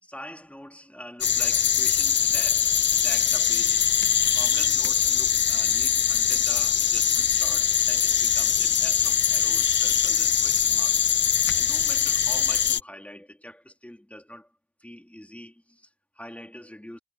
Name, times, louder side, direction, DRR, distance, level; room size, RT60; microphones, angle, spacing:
voice 1, 0.0-11.0 11.5-14.5 14.8-17.0, equal, 5° left, 3.4 m, -44 dB
sound 1, 1.2-12.8, left 8 dB, 40° left, 0.7 m, -22 dB
cardioid pair, 90°, 30 cm